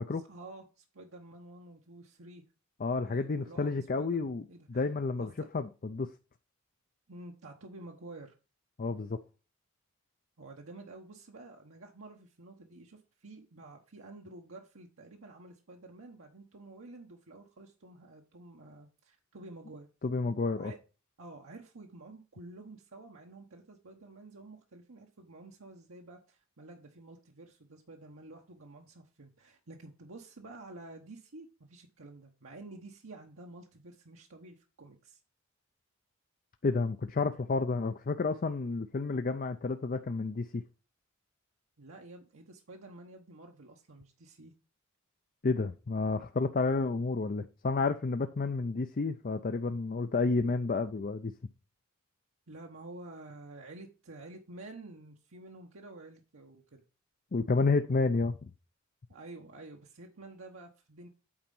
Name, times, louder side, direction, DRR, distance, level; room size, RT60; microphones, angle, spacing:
voice 1, 0.1-2.4 3.0-4.8 5.2-5.5 7.1-8.3 10.4-19.9 20.5-20.8 21.2-35.2 41.8-44.5 52.5-56.8 59.1-61.1, right 2 dB, 75° right, 1.1 m, -50 dB
voice 2, 2.8-4.4 4.7-6.1 8.8-9.2 20.0-20.7 36.6-40.6 45.4-51.3 57.3-58.4, left 3 dB, 40° left, 0.5 m, -30 dB
8.7 x 4.3 x 5.4 m
head